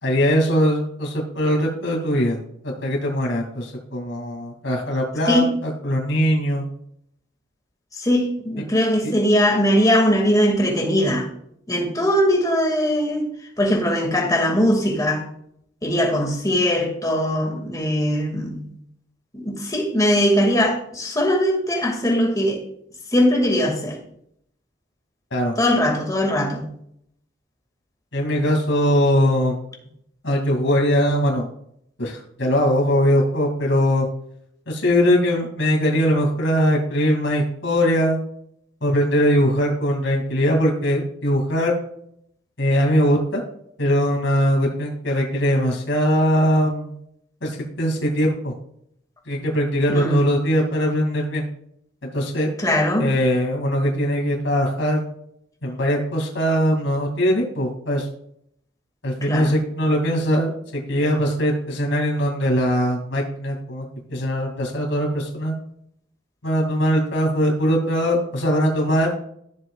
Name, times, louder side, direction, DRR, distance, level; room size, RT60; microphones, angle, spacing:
voice 1, 0.0-2.4 2.6-6.7 25.3-25.6 28.1-29.6 30.2-31.5 32.0-34.1 34.7-38.2 38.8-41.8 42.6-43.4 43.8-47.0 47.4-48.5 49.3-51.4 52.1-52.5 53.0-55.0 55.6-58.1 59.0-65.5 66.4-69.1, equal, 85° left, 0 dB, 2.5 m, -21 dB
voice 2, 7.9-11.3 11.7-13.3 13.6-15.2 15.8-18.7 19.3-22.6 23.1-24.0 25.6-26.7 49.9-50.3 52.6-53.1 59.2-59.6, equal, 20° left, 1 dB, 2.1 m, -20 dB
14.0 x 7.3 x 2.4 m, 0.71 s
head